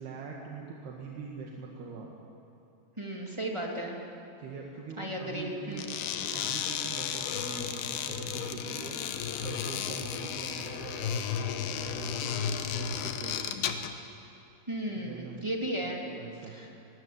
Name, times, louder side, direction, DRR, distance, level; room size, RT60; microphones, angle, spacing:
voice 1, 0.0-2.1 4.4-5.8 6.1-13.4 15.0-15.4 16.0-16.6, right 4 dB, 85° right, -1 dB, 3.9 m, -43 dB
voice 2, 3.0-4.0 5.0-5.9 14.7-16.0 16.5-16.7, right 1 dB, 10° right, -1 dB, 2.3 m, -35 dB
sound 1, 5.7-14.0, left 8 dB, 85° left, 3.1 m, -34 dB
24.5 x 19.5 x 8.7 m, 2.9 s
omnidirectional pair, 4.4 m